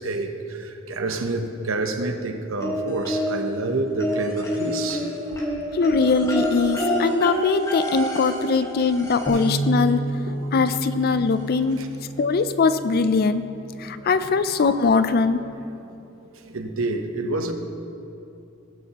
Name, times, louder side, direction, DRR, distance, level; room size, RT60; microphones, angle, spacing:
voice 1, 0.0-5.1 5.4-5.5 8.6-8.7 9.3-9.4 10.3-10.5 11.8-11.9 13.9-14.3 15.8-15.9 16.5-17.5, right 2 dB, 70° right, 0.9 m, -28 dB
sound 1, 2.6-3.6 4.0-9.7 10.9-11.0 11.4-11.5, equal, 15° left, 1.4 m, -27 dB
voice 2, 5.7-10.0 10.5-11.8 12.2-13.4 13.8-15.4, left 4 dB, 50° left, 0.4 m, -21 dB
Bass guitar, 9.3-15.5, right 2 dB, 5° right, 1.0 m, -32 dB
19.0 x 8.0 x 3.0 m
head